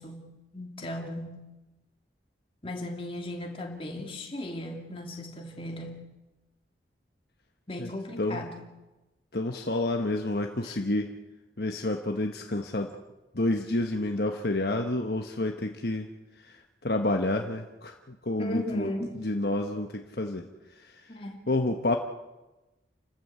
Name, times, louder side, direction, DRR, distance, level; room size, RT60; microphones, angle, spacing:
voice 1, 0.0-1.5 2.6-6.1 7.7-8.6 10.6-10.7 18.4-19.2 21.1-21.5, left 1 dB, 30° left, 2 dB, 2.8 m, -36 dB
voice 2, 9.3-11.2 11.6-13.0 13.3-16.1 16.4-16.5 16.8-20.5 20.8-21.1 21.5-22.0, left 2 dB, 60° left, 4 dB, 1.2 m, -29 dB
29.5 x 13.0 x 8.2 m, 1.1 s
head